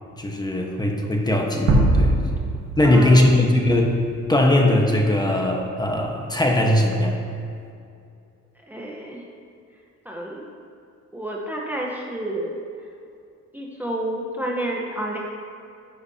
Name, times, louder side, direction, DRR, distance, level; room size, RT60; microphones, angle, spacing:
voice 1, 0.1-2.1 2.8-3.9 4.3-7.2, left 1 dB, 15° left, 1 dB, 1.3 m, -19 dB
sound 1, 1.7-4.1, right 2 dB, 60° right, 1.5 m, -21 dB
voice 2, 2.8-3.3 3.6-3.7 8.7-9.2 10.0-10.5 11.1-12.5 13.5-15.2, right 1 dB, 5° right, -2 dB, 1.1 m, -29 dB
11.0 x 9.7 x 2.9 m, 2.4 s
cardioid pair, 90°, 30 cm